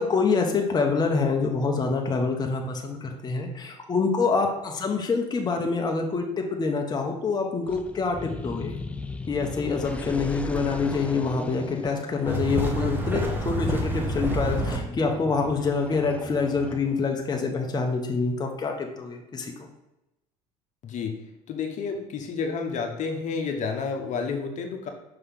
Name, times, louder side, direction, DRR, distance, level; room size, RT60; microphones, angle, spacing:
voice 1, 0.0-8.8 9.3-19.5, left 4 dB, 25° left, 2 dB, 1.0 m, -26 dB
sound 1, 7.7-17.2, left 2 dB, 10° left, 0.3 m, -38 dB
sound 2, 12.3-14.8, right 1 dB, 10° right, 1.3 m, -27 dB
voice 2, 20.8-21.2 21.5-24.9, left 5 dB, 50° left, 3 dB, 1.1 m, -30 dB
5.9 x 3.2 x 5.7 m, 0.93 s
supercardioid pair, 90°, 16 cm